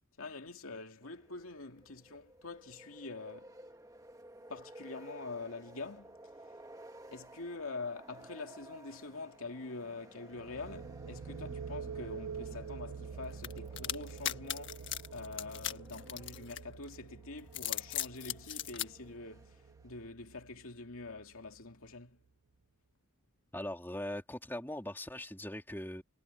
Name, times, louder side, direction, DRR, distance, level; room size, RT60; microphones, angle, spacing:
voice 1, 0.2-3.5 4.5-6.2 7.1-19.6 19.8-22.2, left 3 dB, 90° left, 2.4 m, -45 dB
sound 1, 1.0-20.1, right 1 dB, 15° right, 1.5 m, -55 dB
sound 2, 10.3-21.8, right 6 dB, 90° right, 0.5 m, -47 dB
sound 3, 13.4-16.9 17.4-18.9, left 12 dB, 60° left, 1.6 m, -37 dB
voice 2, 23.5-26.0, left 1 dB, 10° left, 3.0 m, -40 dB
head